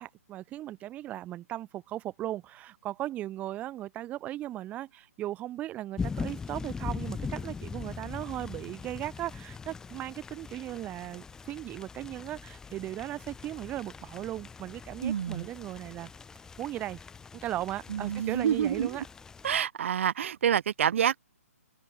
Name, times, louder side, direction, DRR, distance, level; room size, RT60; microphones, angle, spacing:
voice 1, 0.0-16.1 16.6-17.0 17.4-19.0, right 14 dB, 15° right, 2.2 m, -37 dB
sound 1, 6.0-19.6, left 5 dB, 5° left, 1.5 m, -41 dB
voice 2, 15.0-15.5 17.9-19.0 19.4-21.2, right 9 dB, 50° right, 0.5 m, -27 dB
hypercardioid pair, 145°, 8 cm